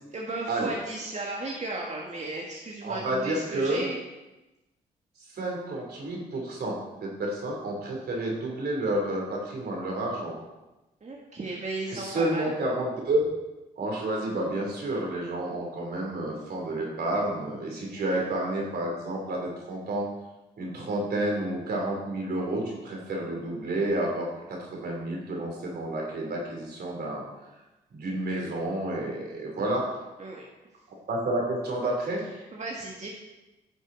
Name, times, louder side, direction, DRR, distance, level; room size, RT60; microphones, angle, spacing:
voice 1, 0.1-4.0 11.0-12.5 17.9-18.2 30.2-30.4 32.5-33.1, right 2 dB, 45° right, -2 dB, 1.7 m, -35 dB
voice 2, 2.8-3.8 5.3-6.8 7.0-10.4 11.9-13.2 13.8-20.1 20.6-24.3 24.6-27.2 27.9-29.8 31.1-32.2, right 1 dB, 70° right, -1 dB, 3.2 m, -30 dB
11.0 x 6.3 x 4.0 m, 1.0 s
supercardioid pair, 45°, 17 cm